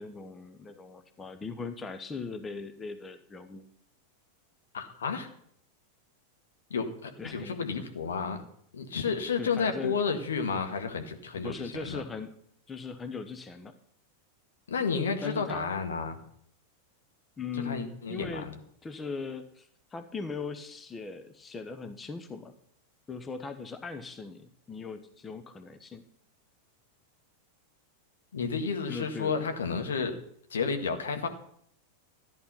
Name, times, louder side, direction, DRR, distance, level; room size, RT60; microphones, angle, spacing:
voice 1, 0.0-3.6 7.2-7.6 9.4-10.0 11.3-12.3 12.7-13.7 15.2-15.8 17.4-18.5 18.8-22.5 23.1-26.0 28.9-29.4, left 4 dB, 15° left, 9 dB, 1.1 m, -39 dB
voice 2, 4.7-5.3 6.7-8.4 8.7-12.0 14.7-16.2 17.5-18.5 28.3-30.2 30.5-31.3, left 5 dB, 65° left, 5 dB, 1.8 m, -31 dB
14.0 x 10.5 x 5.6 m, 0.67 s
figure-of-eight pair, 90°, 0 cm